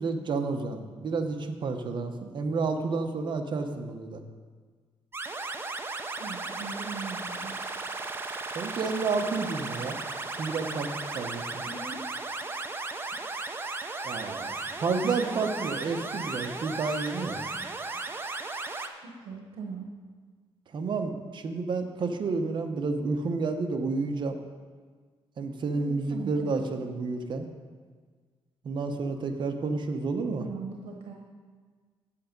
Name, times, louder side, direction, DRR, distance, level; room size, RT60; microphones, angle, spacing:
voice 1, 0.0-4.2 8.5-10.0 10.4-11.4 14.0-17.5 20.7-24.4 25.4-27.5 28.6-30.4, right 4 dB, 50° right, 6 dB, 0.9 m, -30 dB
sound 1, 5.1-18.9, right 3 dB, 25° right, 0.6 m, -35 dB
voice 2, 6.2-7.5 11.6-12.0 15.0-15.2 19.0-19.9 25.7-26.5 30.4-31.1, right 4 dB, 85° right, 1 dB, 1.1 m, -40 dB
8.5 x 8.2 x 5.2 m, 1.5 s
cardioid pair, 130°, 10 cm